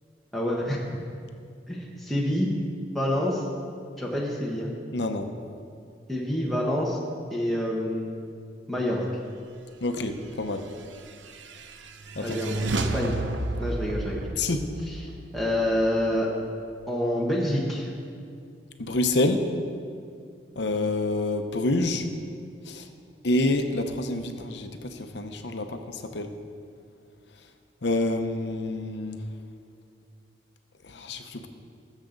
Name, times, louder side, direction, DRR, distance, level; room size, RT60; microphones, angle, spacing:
voice 1, 0.3-1.0 1.7-2.5 2.9-3.5 4.0-4.7 6.1-7.0 7.3-8.2 8.7-9.1 12.2-13.2 13.6-14.4 14.8-16.3 16.9-17.9, left 1 dB, ahead, -5 dB, 1.2 m, -27 dB
voice 2, 4.9-5.3 9.8-10.7 12.2-12.4 14.4-14.6 18.8-19.4 20.6-22.1 22.7-22.8 23.2-26.3 27.8-29.2 30.9-31.5, left 2 dB, 70° left, 7 dB, 0.8 m, -27 dB
sound 1, 10.6-16.2, right 2 dB, 80° right, 0.8 m, -33 dB
20.0 x 7.4 x 3.9 m, 2.3 s
head